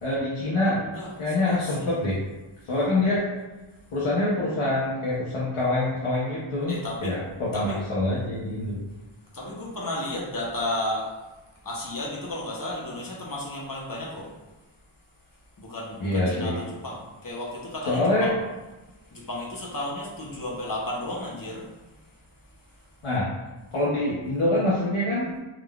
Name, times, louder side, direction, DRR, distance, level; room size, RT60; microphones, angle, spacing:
voice 1, 0.0-2.2 2.7-3.4 3.9-8.8 16.0-16.6 17.9-18.3 23.0-23.3 23.7-25.3, left 2 dB, 85° left, -7 dB, 0.7 m, -25 dB
voice 2, 0.8-1.9 6.7-7.3 7.5-7.8 9.3-11.2 11.6-14.3 15.6-18.3 19.1-22.2, left 1 dB, 45° left, -4 dB, 0.8 m, -33 dB
3.6 x 2.4 x 2.2 m, 1.1 s
wide cardioid pair, 45°, 50 cm